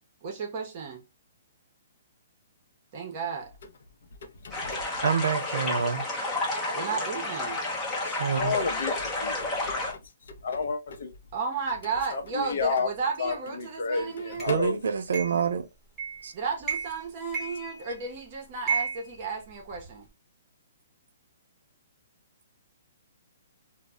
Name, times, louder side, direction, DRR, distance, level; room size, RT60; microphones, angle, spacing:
voice 1, 0.2-1.0 2.9-3.5 6.7-7.6 11.3-14.5 16.3-20.1, right 5 dB, 35° right, 0.6 m, -33 dB
voice 2, 4.4-4.8 8.3-8.9 9.2-10.0 10.3-11.1 12.1-12.9 13.2-14.8, left 4 dB, 65° left, 0.5 m, -31 dB
sound 1, 4.5-9.9, left 2 dB, 15° left, 0.6 m, -31 dB
voice 3, 5.0-6.1 8.1-8.6 14.5-15.7 16.2-16.3, right 6 dB, 75° right, 0.4 m, -27 dB
sound 2, 14.4-14.5 15.1-15.5 16.0-16.3 16.6-17.0 17.3-18.1 18.7-19.9, right 6 dB, 10° right, 0.9 m, -33 dB
2.1 x 2.0 x 3.5 m
hypercardioid pair, 165°, 0 cm